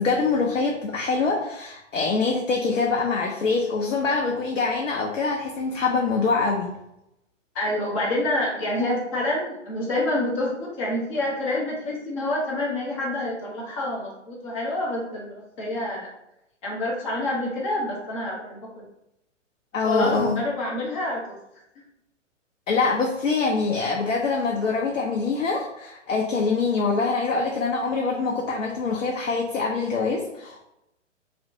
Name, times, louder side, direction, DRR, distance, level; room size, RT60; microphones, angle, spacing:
voice 1, 0.0-6.8 19.7-20.4 22.7-30.6, left 4 dB, 80° left, 0 dB, 0.5 m, -24 dB
voice 2, 7.5-16.1 16.6-18.7 19.8-21.4, left 1 dB, 25° left, -4 dB, 0.7 m, -27 dB
2.8 x 2.0 x 2.6 m, 0.85 s
figure-of-eight pair, 120°, 37 cm